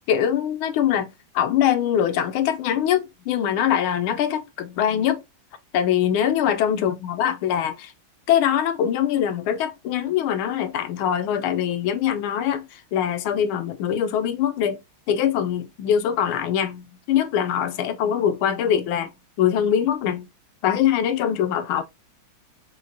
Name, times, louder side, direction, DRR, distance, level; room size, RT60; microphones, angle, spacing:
voice 1, 0.1-5.2 5.7-7.9 8.3-14.8 15.1-19.1 19.4-20.3 20.6-21.8, left 9 dB, 85° left, 1.4 m, -23 dB
6.1 x 2.1 x 2.6 m
omnidirectional pair, 2.3 m